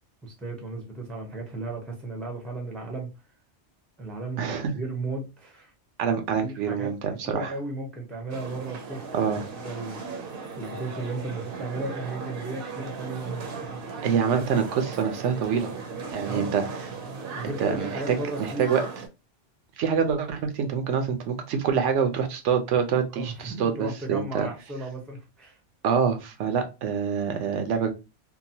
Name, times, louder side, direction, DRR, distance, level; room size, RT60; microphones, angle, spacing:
voice 1, 0.2-3.1 4.0-5.7 6.4-6.9 7.2-9.4 9.6-10.3 10.6-13.8 16.2-16.5 17.3-18.7 23.1-25.6, right 2 dB, ahead, 0.5 m, -35 dB
voice 2, 4.4-4.7 6.0-7.5 9.1-9.4 14.0-15.7 16.1-16.6 17.4-18.8 19.8-24.5 25.8-27.9, right 7 dB, 85° right, 1.0 m, -26 dB
sound 1, 8.3-19.1, right 4 dB, 60° right, 0.7 m, -37 dB
2.8 x 2.2 x 2.6 m
omnidirectional pair, 1.2 m